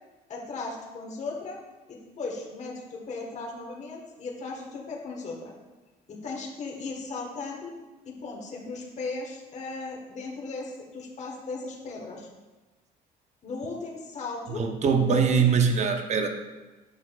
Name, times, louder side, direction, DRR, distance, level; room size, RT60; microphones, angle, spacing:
voice 1, 0.3-1.6 1.9-5.5 6.1-7.7 8.0-12.3 13.4-14.7 15.0-15.5, left 3 dB, 45° left, -1 dB, 1.4 m, -36 dB
voice 2, 14.5-16.3, right 6 dB, 45° right, 6 dB, 0.7 m, -23 dB
8.0 x 6.0 x 2.4 m, 1.2 s
cardioid pair, 110°, 17 cm